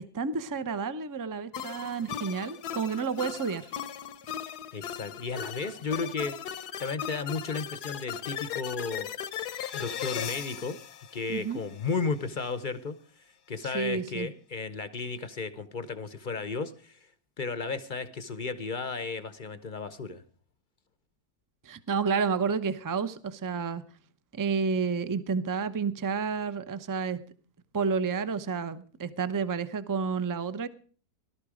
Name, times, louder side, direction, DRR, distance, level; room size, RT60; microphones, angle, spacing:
voice 1, 0.0-3.7 11.3-11.6 13.7-14.3 21.6-23.8 24.3-27.2 27.7-30.7, right 5 dB, 25° right, 14 dB, 0.4 m, -30 dB
sound 1, 1.5-11.9, left 9 dB, 80° left, 1.4 m, -38 dB
voice 2, 4.7-9.1 9.7-10.8 11.1-17.1 17.4-20.2, left 4 dB, 40° left, 13 dB, 0.7 m, -34 dB
17.5 x 12.0 x 5.0 m, 0.43 s
omnidirectional pair, 1.7 m